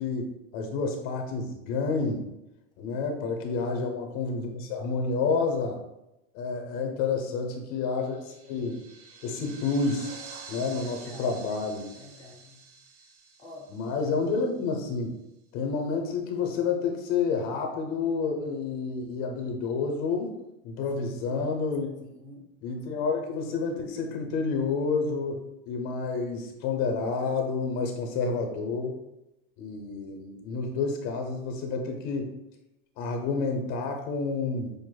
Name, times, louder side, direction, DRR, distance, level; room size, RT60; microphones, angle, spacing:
voice 1, 0.0-2.2 2.8-5.8 6.3-8.8 9.2-10.1 10.5-11.9 13.7-15.1 15.5-20.4 20.6-21.9 22.6-29.0 29.6-32.3 33.0-34.7, left 4 dB, 55° left, 3 dB, 0.7 m, -29 dB
voice 2, 2.9-3.2 6.7-7.1 10.8-11.4 11.9-12.6 13.4-13.7 20.9-21.5 22.0-22.5, left 2 dB, 10° left, -3 dB, 0.7 m, -50 dB
sound 1, 7.8-14.7, right 5 dB, 80° right, 0.8 m, -48 dB
6.2 x 2.5 x 2.2 m, 0.90 s
supercardioid pair, 140°, 35 cm